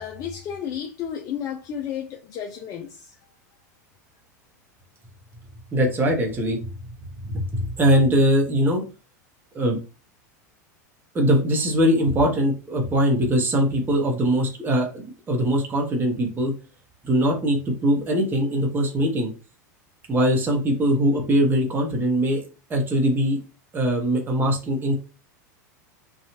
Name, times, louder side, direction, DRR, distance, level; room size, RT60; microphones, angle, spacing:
voice 1, 0.0-3.2, left 8 dB, 40° left, 0.4 m, -32 dB
voice 2, 5.7-6.7 7.2-8.8 9.5-9.8 11.1-16.5 17.0-19.3 20.1-22.4 22.7-23.4 23.7-24.9, equal, 20° right, 0.8 m, -21 dB
2.8 x 2.3 x 2.8 m
hypercardioid pair, 100°, 10 cm